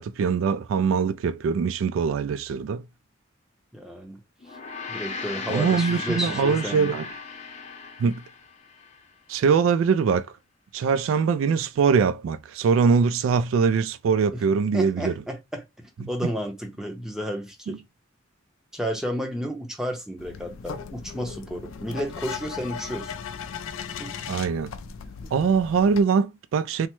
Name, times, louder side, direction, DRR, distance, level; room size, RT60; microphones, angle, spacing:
voice 1, 0.0-2.8 5.5-7.0 8.0-8.2 9.3-10.3 10.7-15.1 16.2-16.3 17.7-17.8 24.3-24.7 25.3-26.9, right 5 dB, 80° right, 0.3 m, -22 dB
voice 2, 3.7-4.2 4.5-4.6 4.9-6.9 14.3-14.4 14.7-17.8 18.7-23.1 24.0-24.1, equal, 5° right, 0.6 m, -32 dB
Gong, 4.4-9.0, left 4 dB, 35° left, 0.6 m, -36 dB
sound 1, 20.2-26.0, left 6 dB, 85° left, 0.4 m, -37 dB
3.3 x 2.0 x 2.9 m
head